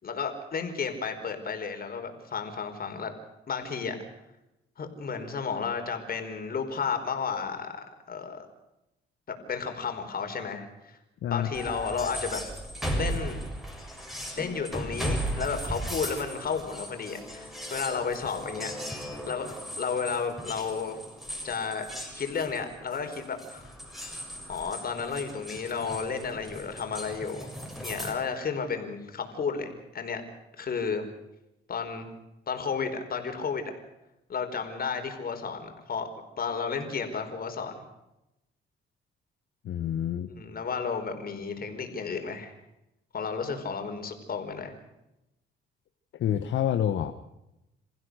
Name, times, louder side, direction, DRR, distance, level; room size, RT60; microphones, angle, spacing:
voice 1, 0.0-3.1 3.5-4.0 4.8-8.5 9.5-11.0 11.3-12.4 13.0-13.4 14.4-21.0 21.4-21.9 22.1-23.7 24.5-27.5 27.8-30.2 30.6-31.0 31.7-32.1 32.5-33.7 34.3-36.1 36.4-37.8 40.4-42.5 43.1-44.7, left 5 dB, 50° left, 5 dB, 4.8 m, -32 dB
Battle preparations, 11.5-28.1, equal, ahead, 7.1 m, -37 dB
voice 2, 39.6-40.3 46.2-47.1, left 10 dB, 70° left, 7 dB, 1.4 m, -27 dB
28.5 x 15.5 x 6.5 m, 0.90 s
cardioid pair, 90°, 20 cm